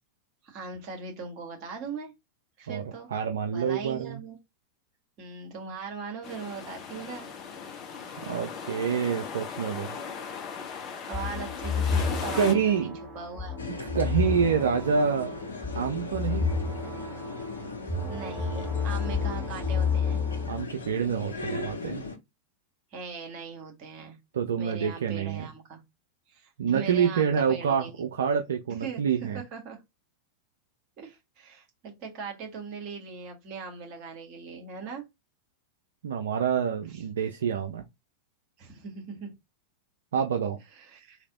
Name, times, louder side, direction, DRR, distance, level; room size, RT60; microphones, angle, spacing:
voice 1, 0.4-2.1 2.6-3.1 3.5-4.4 5.2-7.3 8.0-8.4 11.1-12.7 13.1-13.6 18.1-20.2 22.9-24.2 24.6-25.8 26.3-27.9 28.7-29.8 31.0-35.0 36.9-37.0 38.6-39.3 40.7-41.2, right 5 dB, 40° right, 1.7 m, -40 dB
voice 2, 3.1-4.2 8.2-9.9 12.4-13.0 13.9-15.4 15.7-16.5 20.5-22.0 24.3-25.5 26.6-29.4 36.0-37.8 40.1-40.6, right 7 dB, 65° right, 0.4 m, -27 dB
sound 1, 6.2-12.5, left 6 dB, 35° left, 0.8 m, -38 dB
sound 2, 11.1-20.6, left 5 dB, ahead, 1.8 m, -31 dB
sound 3, 13.6-22.2, left 3 dB, 75° left, 0.9 m, -39 dB
3.3 x 2.8 x 3.6 m
figure-of-eight pair, 90°, 0 cm